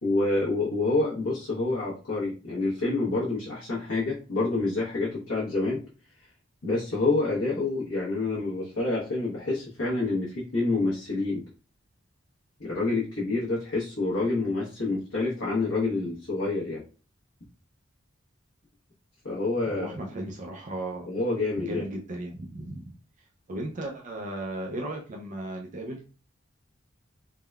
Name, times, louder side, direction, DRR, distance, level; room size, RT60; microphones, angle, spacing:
voice 1, 0.0-5.8 6.6-11.4 12.6-16.8 19.2-19.9 21.0-21.9, left 2 dB, 90° left, -7 dB, 0.9 m, -27 dB
voice 2, 19.7-21.1 21.6-22.9 23.5-26.0, right 1 dB, 40° right, 1 dB, 0.4 m, -35 dB
3.5 x 2.2 x 2.2 m, 0.36 s
head